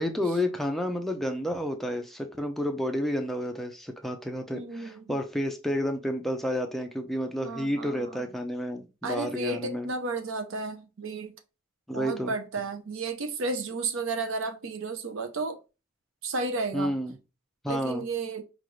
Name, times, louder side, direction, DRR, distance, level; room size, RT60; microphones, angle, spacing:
voice 1, 0.0-9.9 11.9-12.3 16.7-17.2 17.6-18.0, equal, ahead, 0.6 m, -30 dB
voice 2, 4.5-5.2 7.4-8.2 9.0-11.3 11.9-15.6 16.2-16.9 17.7-18.4, right 3 dB, 90° right, 0.7 m, -33 dB
5.2 x 2.5 x 3.2 m
head